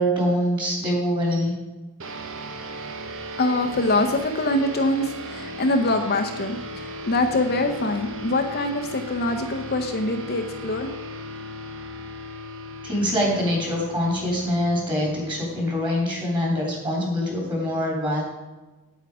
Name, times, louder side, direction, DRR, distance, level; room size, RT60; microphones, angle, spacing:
voice 1, 0.0-1.5 12.8-18.2, equal, 20° right, -2 dB, 3.2 m, -24 dB
sound 1, 2.0-16.8, equal, 60° right, 0.9 m, -37 dB
voice 2, 3.4-10.9, left 2 dB, 45° left, 5 dB, 0.7 m, -24 dB
9.1 x 8.4 x 4.9 m, 1.2 s
head